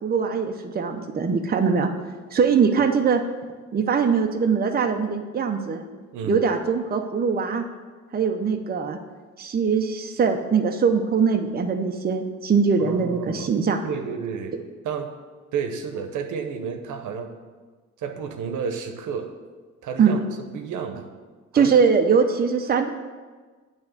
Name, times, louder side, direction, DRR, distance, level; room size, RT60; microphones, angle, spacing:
voice 1, 0.0-1.9 2.3-3.2 3.7-5.8 6.2-7.6 8.1-9.0 9.4-13.8 20.0-20.2 21.5-22.9, right 5 dB, 30° right, 5 dB, 0.7 m, -22 dB
voice 2, 12.8-13.5 13.8-15.1 15.5-17.3 18.0-19.3 19.8-20.2 20.5-21.1 21.5-21.7, right 6 dB, 80° right, 6 dB, 0.9 m, -31 dB
8.6 x 3.5 x 6.8 m, 1.4 s
cardioid pair, 90°, 30 cm